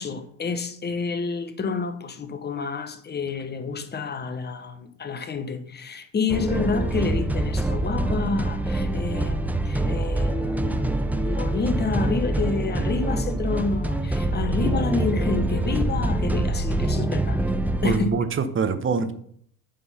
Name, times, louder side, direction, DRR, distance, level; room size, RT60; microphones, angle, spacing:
voice 1, 0.0-17.4 17.8-18.2, left 4 dB, 20° left, 1.0 m, -29 dB
sound 1, 6.3-18.0, right 1 dB, 5° right, 0.4 m, -25 dB
voice 2, 17.8-19.1, right 5 dB, 25° right, 0.9 m, -24 dB
8.8 x 3.7 x 5.5 m
hypercardioid pair, 80°, 46 cm